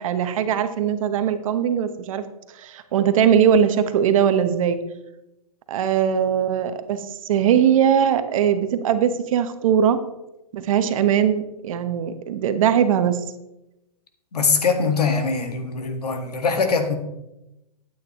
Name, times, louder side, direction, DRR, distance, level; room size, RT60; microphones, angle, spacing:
voice 1, 0.0-2.2 2.6-4.8 5.7-10.0 10.5-13.2, right 8 dB, 60° right, 10 dB, 1.1 m, -20 dB
voice 2, 14.3-17.0, left 5 dB, 85° left, 5 dB, 1.7 m, -22 dB
12.5 x 9.0 x 3.1 m, 0.93 s
hypercardioid pair, 125°, 19 cm